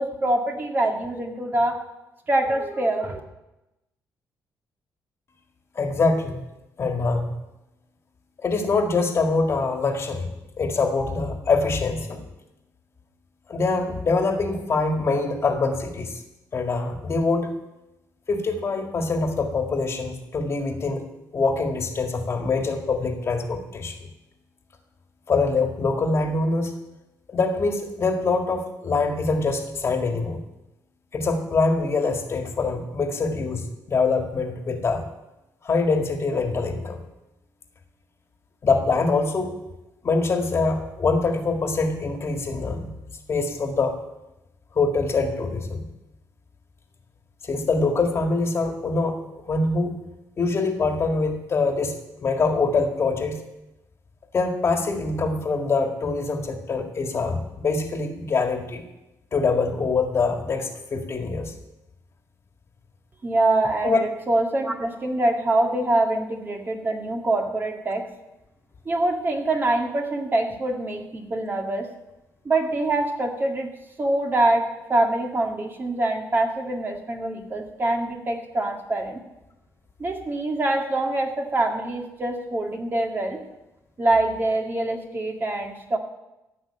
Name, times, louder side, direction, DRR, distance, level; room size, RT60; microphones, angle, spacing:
voice 1, 0.0-1.8 2.3-3.2 63.2-68.1 68.9-71.9 72.4-73.7 74.0-79.2 80.0-83.4 84.0-86.0, right 2 dB, 30° right, 2 dB, 1.9 m, -24 dB
voice 2, 5.8-6.4 6.8-7.3 8.4-10.3 10.6-12.2 13.5-16.1 16.5-17.5 18.3-21.0 21.3-24.1 25.3-26.7 27.3-30.4 31.1-35.1 35.6-37.0 38.6-39.5 40.0-42.9 43.3-44.0 44.8-45.8 47.4-49.2 49.4-49.9 50.4-53.4 54.3-58.8 59.3-61.5 63.8-64.0, left 3 dB, 40° left, 4 dB, 1.9 m, -24 dB
15.0 x 5.9 x 8.7 m, 0.96 s
cardioid pair, 110°, 7 cm